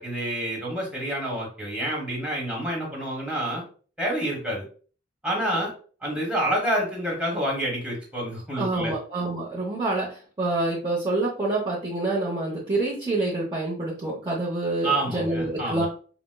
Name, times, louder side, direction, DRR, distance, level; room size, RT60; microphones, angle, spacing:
voice 1, 0.0-3.6 4.0-4.6 5.2-5.7 6.0-8.9 14.8-15.9, right 1 dB, 5° right, -3 dB, 1.1 m, -28 dB
voice 2, 8.6-15.9, right 2 dB, 20° right, -6 dB, 0.7 m, -27 dB
4.9 x 2.0 x 2.2 m, 0.41 s
head